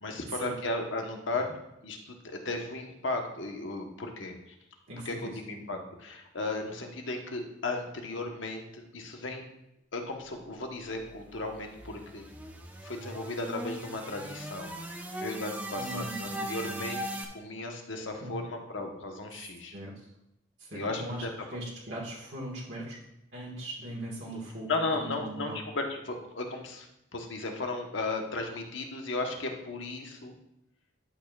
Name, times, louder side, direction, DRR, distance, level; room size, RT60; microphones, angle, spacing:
voice 1, 0.0-1.5 1.8-4.4 5.0-9.4 9.9-12.3 12.8-17.0 17.3-19.7 20.7-21.3 24.7-26.9 27.1-30.3, left 2 dB, 70° left, 3 dB, 1.1 m, -35 dB
voice 2, 4.9-5.4 15.7-16.8 18.2-18.4 19.4-20.1 20.6-23.0 23.3-24.7 25.0-25.6, right 1 dB, 55° right, -5 dB, 1.6 m, -40 dB
sound 1, 10.8-17.2, right 1 dB, 10° right, 0.6 m, -39 dB
11.5 x 6.6 x 2.4 m, 0.84 s
head